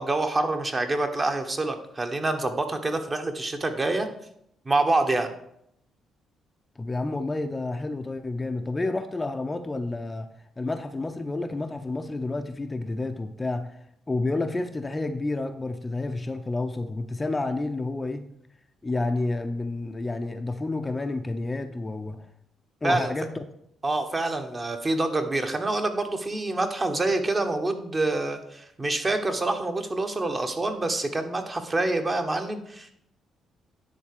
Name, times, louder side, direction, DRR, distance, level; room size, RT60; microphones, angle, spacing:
voice 1, 0.0-4.1 4.6-5.3 22.8-23.1 23.8-32.9, right 2 dB, 25° right, 6 dB, 1.2 m, -26 dB
voice 2, 6.8-10.3 10.6-13.8 14.1-18.3 18.8-22.3 22.8-23.5, left 2 dB, 20° left, 7 dB, 0.6 m, -30 dB
10.0 x 4.0 x 6.7 m, 0.74 s
cardioid pair, 90°, 0 cm